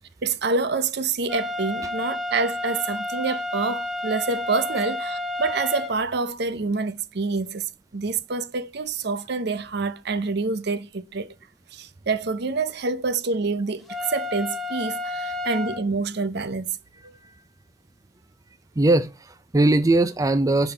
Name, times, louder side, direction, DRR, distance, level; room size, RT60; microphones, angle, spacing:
voice 1, 0.2-7.7 7.9-11.3 11.7-16.7 17.0-17.1, right 4 dB, 55° right, 0.6 m, -27 dB
sound 1, 1.3-5.9 13.9-15.8, left 2 dB, ahead, 1.4 m, -30 dB
voice 2, 18.8-20.7, right 2 dB, 15° right, 0.4 m, -20 dB
10.5 x 3.6 x 5.7 m
head